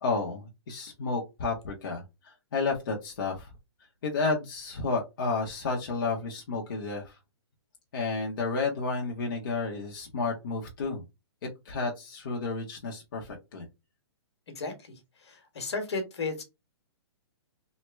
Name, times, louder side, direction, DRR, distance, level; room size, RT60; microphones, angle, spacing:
voice 1, 0.0-3.5 4.0-7.2 7.9-11.0 11.6-13.6, left 4 dB, 50° left, 0.8 m, -31 dB
voice 2, 14.5-16.4, left 3 dB, 75° left, 1.2 m, -35 dB
3.1 x 2.1 x 3.2 m
hypercardioid pair, 170°, 14 cm